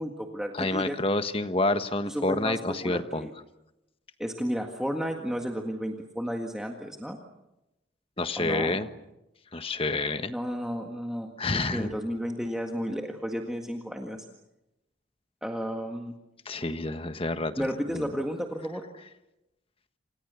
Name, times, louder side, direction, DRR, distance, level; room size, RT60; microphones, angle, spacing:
voice 1, 0.0-1.0 2.1-3.3 4.2-7.2 8.4-8.8 10.3-14.2 15.4-16.2 17.6-18.8, equal, 5° right, 2 dB, 1.7 m, -33 dB
voice 2, 0.6-3.3 8.2-8.9 9.5-10.3 11.4-11.9 16.4-17.7 17.9-18.1, left 2 dB, 30° left, 10 dB, 1.4 m, -28 dB
28.0 x 28.0 x 6.9 m, 0.93 s
head